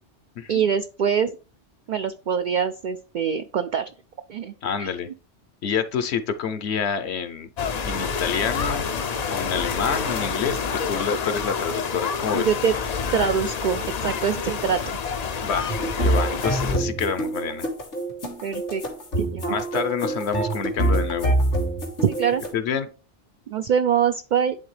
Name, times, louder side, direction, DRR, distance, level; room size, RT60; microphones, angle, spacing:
voice 1, 0.5-1.3 1.9-3.9 4.3-4.5 4.8-4.9 12.3-12.7 13.1-15.0 18.4-18.8 19.2-19.6 22.0-22.4 23.5-24.6, right 7 dB, 60° right, 0.5 m, -24 dB
voice 2, 4.6-5.1 5.6-7.5 7.8-8.9 9.3-12.5 15.4-15.7 16.0-17.7 19.5-21.4 22.5-22.9, left 6 dB, 70° left, 0.9 m, -27 dB
sound 1, 7.6-16.8, left 6 dB, 50° left, 0.5 m, -28 dB
sound 2, 15.7-22.5, right 1 dB, 85° left, 2.4 m, -25 dB
10.5 x 3.9 x 3.2 m
omnidirectional pair, 1.2 m